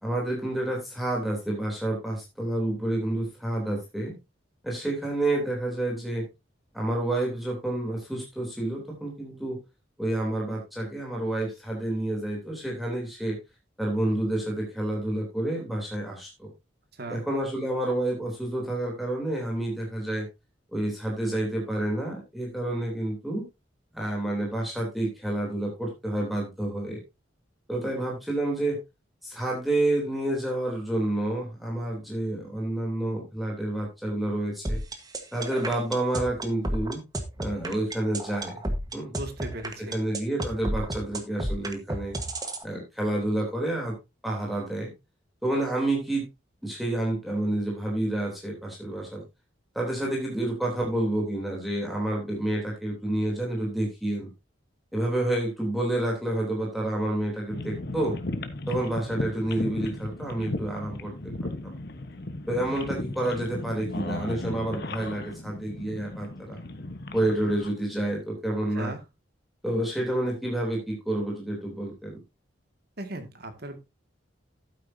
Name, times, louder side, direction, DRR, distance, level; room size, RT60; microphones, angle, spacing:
voice 1, 0.0-4.1 4.6-6.3 6.7-9.6 10.0-13.4 13.8-16.5 17.1-20.3 20.7-23.5 23.9-27.0 27.7-28.8 29.2-34.8 35.3-37.0 37.4-38.6 38.9-39.1 39.9-42.1 42.6-43.9 44.2-44.9 45.4-46.3 46.6-49.2 49.7-54.3 54.9-58.2 58.7-61.3 61.6-61.7 62.5-66.6 67.1-68.9 69.6-72.2, right 1 dB, ahead, -2 dB, 3.3 m, -29 dB
voice 2, 16.9-17.2 39.2-40.0 68.7-69.0 73.0-73.8, right 2 dB, 55° right, 6 dB, 2.2 m, -37 dB
sound 1, 34.6-42.6, right 1 dB, 20° right, 1.4 m, -31 dB
sound 2, 57.5-67.7, left 2 dB, 55° left, 1.2 m, -36 dB
12.5 x 9.3 x 2.8 m, 0.24 s
head